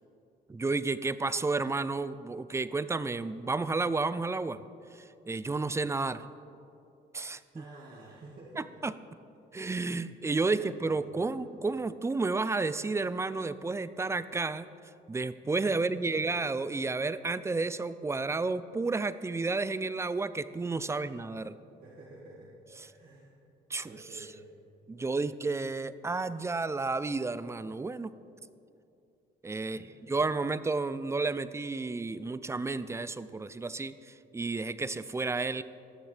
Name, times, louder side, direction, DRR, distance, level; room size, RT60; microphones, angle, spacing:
voice 1, 0.5-4.6 4.9-6.2 7.1-7.6 8.8-8.9 9.5-14.7 15.1-21.6 23.7-24.3 24.9-28.1 29.4-35.6, right 3 dB, 15° right, 14 dB, 0.3 m, -31 dB
voice 2, 7.5-8.8 10.4-11.4 15.6-16.3 20.8-21.1 21.8-23.4 23.8-24.4 29.6-30.1, right 2 dB, 50° right, -5 dB, 1.7 m, -51 dB
19.5 x 6.5 x 3.3 m, 2.6 s
cardioid pair, 90°, 20 cm